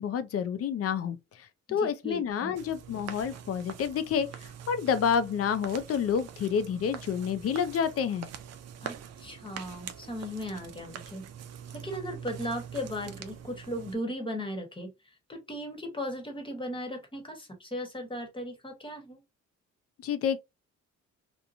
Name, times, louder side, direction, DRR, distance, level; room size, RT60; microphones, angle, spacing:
voice 1, 0.0-8.3 20.0-20.4, left 7 dB, 50° left, 0.5 m, -29 dB
voice 2, 1.7-2.5 8.8-11.3 11.7-14.9 15.3-19.2, equal, 15° left, 1.1 m, -37 dB
sound 1, 2.6-14.0, right 8 dB, 60° right, 0.5 m, -44 dB
2.9 x 2.2 x 2.5 m
cardioid pair, 90°, 30 cm